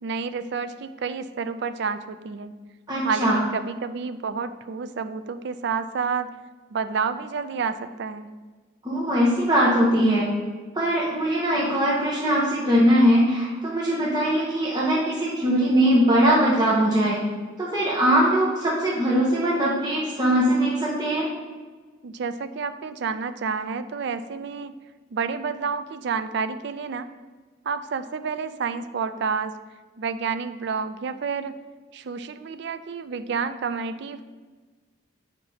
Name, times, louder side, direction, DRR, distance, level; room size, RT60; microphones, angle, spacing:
voice 1, 0.0-2.5 3.0-6.3 6.7-8.3 22.0-24.7 25.1-27.1 27.7-29.5 30.0-31.5 31.9-34.2, right 5 dB, 55° right, 11 dB, 0.3 m, -29 dB
voice 2, 2.9-3.4 8.8-10.3 10.7-17.2 17.6-21.3, equal, 20° right, -6 dB, 0.9 m, -21 dB
8.6 x 5.2 x 2.8 m, 1.4 s
head